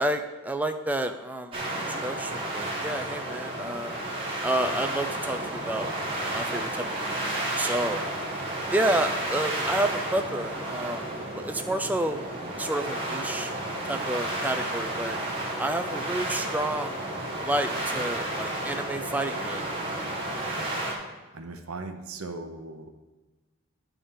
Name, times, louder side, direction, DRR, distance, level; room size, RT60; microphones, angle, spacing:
voice 1, 0.0-1.5 1.9-4.0 4.4-8.0 8.7-11.0 11.3-12.3 12.6-13.5 13.8-15.2 15.6-17.0 17.4-19.7, right 1 dB, 5° right, 7 dB, 0.3 m, -30 dB
sound 1, 1.5-20.9, right 1 dB, 25° right, 1.2 m, -32 dB
voice 2, 21.3-22.9, right 3 dB, 90° right, 7 dB, 0.7 m, -38 dB
10.0 x 3.5 x 5.5 m, 1.2 s
head